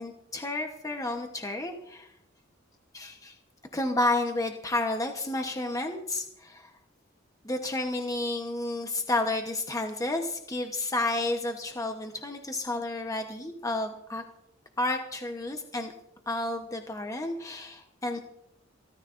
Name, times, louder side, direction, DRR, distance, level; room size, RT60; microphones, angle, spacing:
voice 1, 0.0-2.1 2.9-3.3 3.7-6.7 7.4-14.2 14.8-15.9 16.3-18.2, left 2 dB, 15° left, 4 dB, 1.0 m, -31 dB
26.5 x 14.0 x 2.6 m, 0.81 s
head